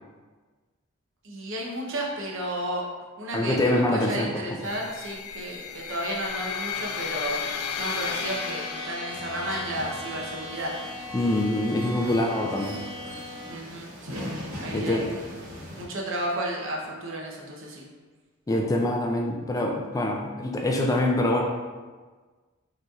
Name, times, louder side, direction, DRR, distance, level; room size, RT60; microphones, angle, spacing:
voice 1, 1.2-2.8 3.2-7.4 7.8-10.7 13.5-15.3 15.8-17.8, right 1 dB, 60° right, -1 dB, 0.8 m, -33 dB
voice 2, 3.3-4.3 11.1-12.8 14.7-15.0 18.5-21.4, left 1 dB, 15° left, 1 dB, 0.3 m, -25 dB
sound 1, 4.6-9.7, left 6 dB, 90° left, 0.4 m, -34 dB
sound 2, 8.0-13.5, left 1 dB, 50° left, 1.1 m, -39 dB
sound 3, 9.1-15.9, equal, 90° right, 0.9 m, -40 dB
5.1 x 3.1 x 2.4 m, 1.4 s
head